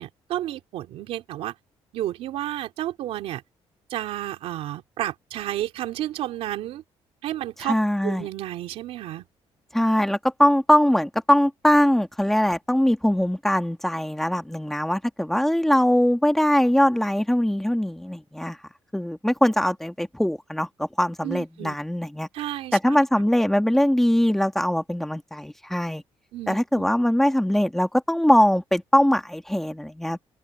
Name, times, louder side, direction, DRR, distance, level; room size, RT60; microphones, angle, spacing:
voice 1, 0.0-1.5 1.9-3.4 3.9-6.8 7.2-7.8 8.0-9.3 21.2-21.8 22.3-23.0 26.3-26.8, right 13 dB, 80° right, 3.3 m, -31 dB
voice 2, 7.6-8.3 9.7-18.6 18.9-22.3 22.7-26.0 26.5-30.2, equal, 5° left, 1.5 m, -21 dB
open air
cardioid pair, 170°, 10 cm